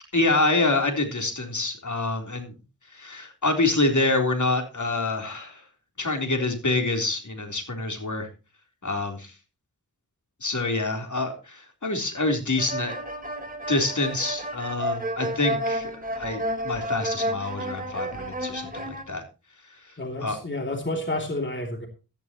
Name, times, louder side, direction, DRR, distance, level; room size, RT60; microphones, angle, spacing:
voice 1, 0.1-2.5 2.9-5.6 6.0-8.3 8.8-9.3 10.4-12.9 13.7-15.9 16.2-19.2 20.2-20.4, left 2 dB, 50° left, 4 dB, 3.7 m, -26 dB
sound 1, 12.6-19.0, right 1 dB, 20° right, 4.1 m, -31 dB
voice 2, 20.0-21.9, left 1 dB, 30° left, 2 dB, 2.8 m, -30 dB
15.0 x 13.5 x 3.0 m, 0.32 s
wide cardioid pair, 60°, 38 cm